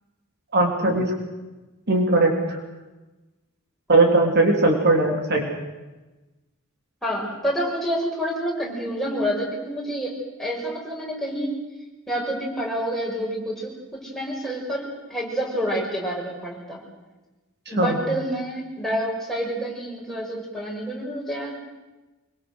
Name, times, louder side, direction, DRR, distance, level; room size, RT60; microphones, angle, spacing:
voice 1, 0.5-1.1 1.9-2.3 3.9-5.5 17.8-18.0, right 2 dB, 50° right, 2 dB, 3.4 m, -19 dB
voice 2, 7.0-10.1 10.4-11.6 12.1-16.8 17.7-21.5, equal, ahead, -3 dB, 6.1 m, -28 dB
25.0 x 24.0 x 6.4 m, 1.1 s
head